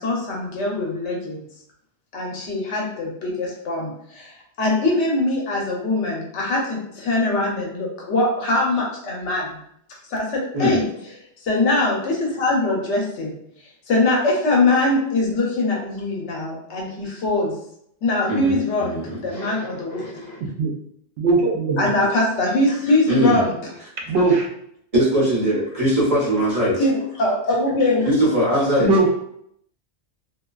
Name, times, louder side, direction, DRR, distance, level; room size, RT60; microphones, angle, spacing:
voice 1, 0.0-1.4 2.1-4.3 4.6-9.6 10.1-10.8 11.4-13.4 13.9-17.5 18.0-20.0 21.8-23.6 26.8-28.1, left 2 dB, 85° left, -2 dB, 1.0 m, -22 dB
voice 2, 18.8-20.4 23.1-23.5 24.9-26.7 28.0-28.9, right 1 dB, 35° right, -7 dB, 0.9 m, -21 dB
voice 3, 21.2-21.9 24.0-24.5 28.8-29.1, right 3 dB, 70° right, 0 dB, 0.8 m, -19 dB
2.5 x 2.2 x 2.3 m, 0.71 s
omnidirectional pair, 1.2 m